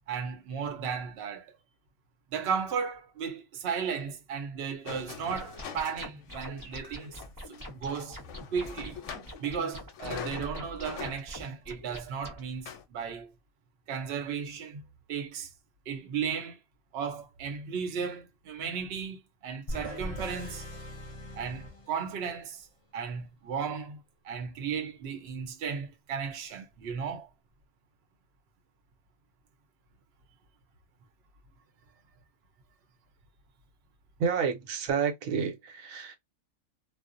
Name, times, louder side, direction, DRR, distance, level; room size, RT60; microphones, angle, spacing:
voice 1, 0.1-1.5 2.3-7.2 7.5-8.2 8.5-9.0 9.4-13.3 13.9-14.8 15.1-15.5 15.9-16.6 16.9-20.6 21.3-22.7 22.9-27.3, right 6 dB, 55° right, 0.8 m, -35 dB
sound 1, 4.8-9.6 9.9-11.2 11.8-11.9 12.4-12.8, left 8 dB, 70° left, 0.9 m, -43 dB
sound 2, 5.4-12.4, equal, 20° right, 0.7 m, -45 dB
sound 3, 19.7-22.5, equal, 40° left, 0.5 m, -40 dB
voice 2, 34.2-36.2, right 6 dB, 90° right, 1.1 m, -30 dB
2.4 x 2.1 x 2.5 m
omnidirectional pair, 1.4 m